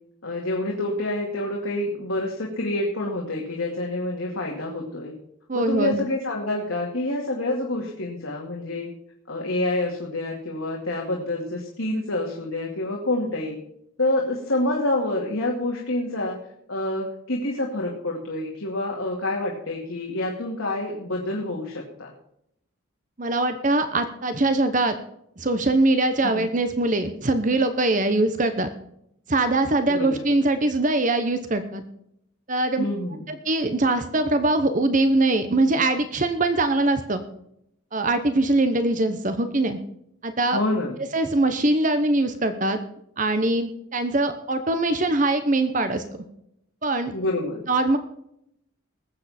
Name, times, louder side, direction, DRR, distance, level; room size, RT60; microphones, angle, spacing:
voice 1, 0.2-5.1 5.5-8.9 9.3-13.6 14.0-16.4 16.7-22.1 26.2-26.4 29.9-30.2 32.8-33.2 40.5-41.0 47.1-47.7, left 1 dB, 75° left, -2 dB, 2.5 m, -27 dB
voice 2, 5.5-6.0 23.2-24.9 25.4-28.7 29.3-31.8 32.5-32.8 33.3-37.2 37.9-39.8 40.2-40.6 41.1-42.8 43.2-46.0 46.8-47.1 47.7-48.0, right 2 dB, 40° right, 9 dB, 0.9 m, -22 dB
20.5 x 7.7 x 4.3 m, 0.75 s
head